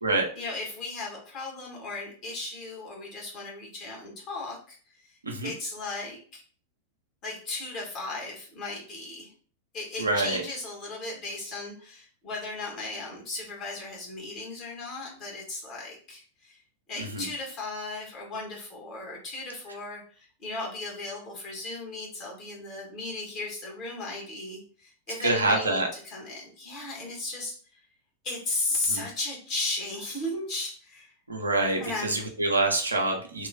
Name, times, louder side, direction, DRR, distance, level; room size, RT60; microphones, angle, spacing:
voice 1, 0.3-6.4 7.2-9.3 9.7-16.6 16.9-27.8 28.2-31.1 31.8-32.2, left 2 dB, 35° left, -2 dB, 1.3 m, -36 dB
voice 2, 10.0-10.4 17.0-17.3 25.2-25.9 28.9-29.0 31.3-33.5, right 2 dB, 80° right, 2 dB, 0.6 m, -26 dB
3.0 x 2.3 x 3.2 m, 0.43 s
figure-of-eight pair, 90°, 0 cm